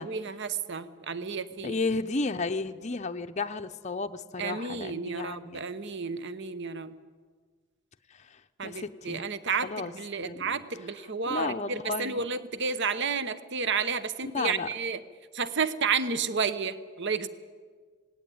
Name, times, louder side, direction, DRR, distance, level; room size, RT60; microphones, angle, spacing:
voice 1, 0.0-1.8 4.4-7.0 8.6-15.0 15.3-17.3, right 5 dB, 55° right, 14 dB, 0.9 m, -31 dB
voice 2, 1.6-5.7 8.1-9.2 9.6-9.9 10.2-10.6 11.3-12.2 14.3-14.7, left 3 dB, 30° left, 7 dB, 0.6 m, -33 dB
18.0 x 18.0 x 9.3 m, 1.5 s
head